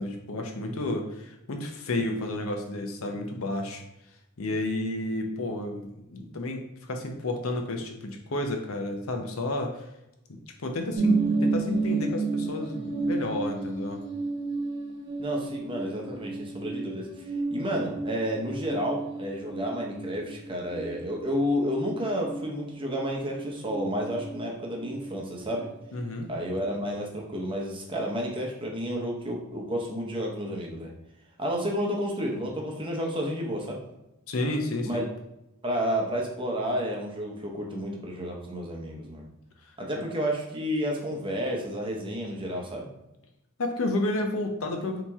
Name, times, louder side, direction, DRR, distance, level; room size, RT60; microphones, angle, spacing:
voice 1, 0.0-3.8 4.4-9.8 10.3-14.0 25.9-26.3 34.3-35.1 43.6-45.0, left 2 dB, 90° left, 4 dB, 0.7 m, -31 dB
sound 1, 10.9-24.4 24.7-25.6 25.9-26.0, right 3 dB, 55° right, 1.0 m, -32 dB
voice 2, 15.2-17.1 17.5-25.7 26.3-30.9 31.4-33.8 34.8-35.0 35.6-39.3 39.8-42.9, equal, 25° right, 0 dB, 0.8 m, -31 dB
4.2 x 2.9 x 3.5 m, 0.91 s
head